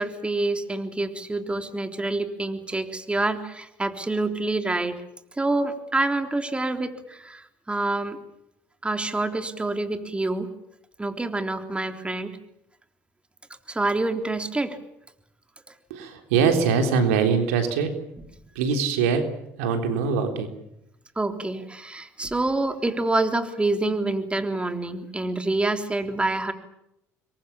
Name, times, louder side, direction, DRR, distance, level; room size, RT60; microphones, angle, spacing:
voice 1, 0.0-5.0 5.4-8.2 8.8-10.5 11.0-12.4 13.7-14.8 21.2-26.5, right 2 dB, 15° right, 6 dB, 3.6 m, -27 dB
voice 2, 15.9-17.9 18.6-19.3 19.6-20.5, right 5 dB, 85° right, 6 dB, 3.7 m, -22 dB
27.0 x 22.5 x 7.3 m, 0.81 s
hypercardioid pair, 70°, 7 cm